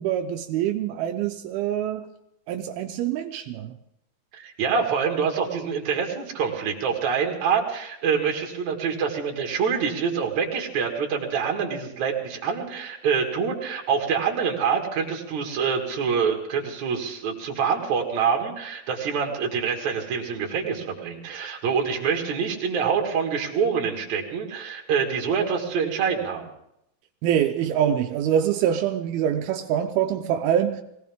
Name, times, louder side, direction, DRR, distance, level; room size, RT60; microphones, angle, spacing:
voice 1, 0.0-2.1 2.5-3.7 27.2-30.8, right 10 dB, 85° right, 5 dB, 2.7 m, -25 dB
voice 2, 4.3-26.5, right 6 dB, 55° right, 1 dB, 3.2 m, -26 dB
21.5 x 17.5 x 3.6 m, 0.79 s
omnidirectional pair, 4.3 m